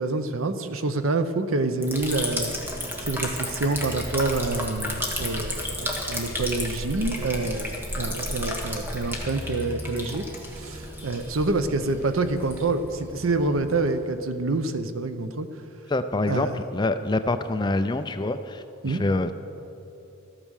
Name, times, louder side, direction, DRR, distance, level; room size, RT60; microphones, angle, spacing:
voice 1, 0.0-2.6 3.0-10.2 10.5-15.5 16.3-16.6 18.8-19.0, right 3 dB, 70° right, 10 dB, 0.7 m, -27 dB
Liquid, 1.8-14.3, equal, 10° right, 1.3 m, -33 dB
voice 2, 15.9-19.3, left 2 dB, 20° left, 10 dB, 0.4 m, -26 dB
13.5 x 8.9 x 6.4 m, 2.8 s
head